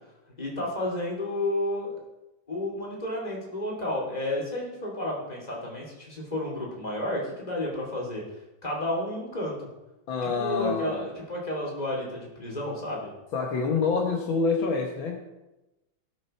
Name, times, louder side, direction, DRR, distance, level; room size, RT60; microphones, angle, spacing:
voice 1, 0.4-2.0 2.5-8.2 8.6-9.5 10.2-13.1, left 1 dB, 20° left, -2 dB, 3.0 m, -31 dB
voice 2, 10.1-11.1 13.3-15.2, left 4 dB, 70° left, 2 dB, 1.9 m, -27 dB
16.5 x 6.6 x 4.4 m, 1.0 s
omnidirectional pair, 2.3 m